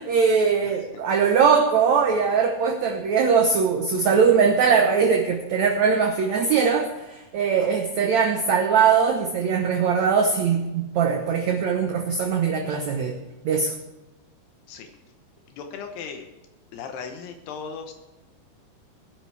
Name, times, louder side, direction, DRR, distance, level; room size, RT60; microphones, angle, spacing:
voice 1, 0.0-13.2 13.4-13.7, right 6 dB, 75° right, 3 dB, 1.6 m, -21 dB
voice 2, 15.5-16.2 16.7-17.9, left 6 dB, 80° left, 5 dB, 3.0 m, -37 dB
20.5 x 11.0 x 3.4 m, 1.0 s
omnidirectional pair, 4.7 m